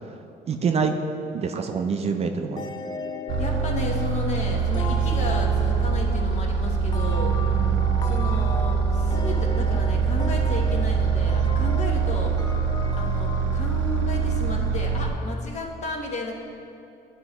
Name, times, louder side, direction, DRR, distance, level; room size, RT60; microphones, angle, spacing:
voice 1, 0.5-0.9 1.3-2.6 7.2-8.0, right 5 dB, 40° right, 5 dB, 0.4 m, -27 dB
sound 1, 2.6-15.0, left 3 dB, 25° left, 0.4 m, -37 dB
sound 2, 3.3-15.1, right 6 dB, 85° right, 0.6 m, -23 dB
voice 2, 3.4-7.3 8.0-12.5 13.0-16.3, left 2 dB, 45° left, 0 dB, 1.0 m, -33 dB
11.0 x 4.3 x 3.0 m, 2.6 s
cardioid pair, 110°, 17 cm